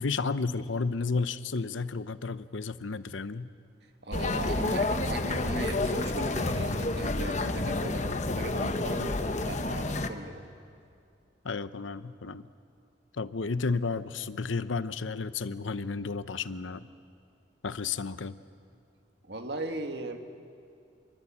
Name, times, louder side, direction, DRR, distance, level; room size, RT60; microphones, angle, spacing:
voice 1, 0.0-3.5 11.4-12.5 13.1-16.9 17.6-18.4, left 4 dB, 85° left, 14 dB, 0.8 m, -32 dB
voice 2, 3.8-10.4 19.2-20.2, right 2 dB, 60° right, 6 dB, 1.8 m, -38 dB
sound 1, 4.1-10.1, left 2 dB, 40° left, 1.0 m, -29 dB
27.0 x 22.5 x 8.6 m, 2.4 s
head